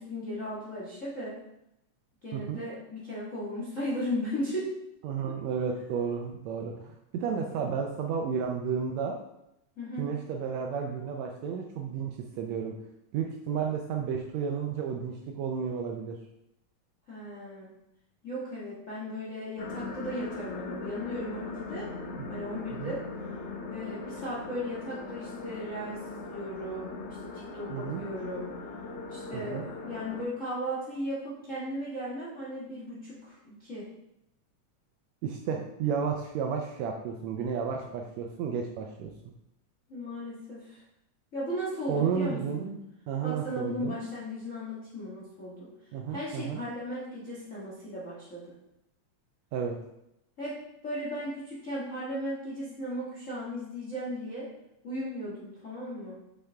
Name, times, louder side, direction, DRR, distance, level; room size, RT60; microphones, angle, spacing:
voice 1, 0.0-1.4 2.2-4.7 9.8-10.0 17.1-17.7 18.2-21.9 22.3-23.0 23.7-28.5 29.1-33.9 35.8-35.9 39.9-40.8 41.3-42.7 43.2-45.7 46.1-48.4 50.4-50.6 50.8-54.5 54.8-56.2, equal, 35° left, -7 dB, 1.3 m, -36 dB
voice 2, 5.0-9.2 10.0-12.7 13.1-16.2 22.2-22.3 22.7-22.9 27.7-28.0 29.3-29.6 35.2-39.1 41.9-42.8 43.1-44.0 45.9-46.6 49.5-49.8, right 6 dB, 75° right, 2 dB, 1.7 m, -32 dB
sound 1, 19.6-30.2, left 3 dB, 65° left, 1.8 m, -40 dB
6.5 x 5.8 x 3.4 m, 0.83 s
omnidirectional pair, 3.5 m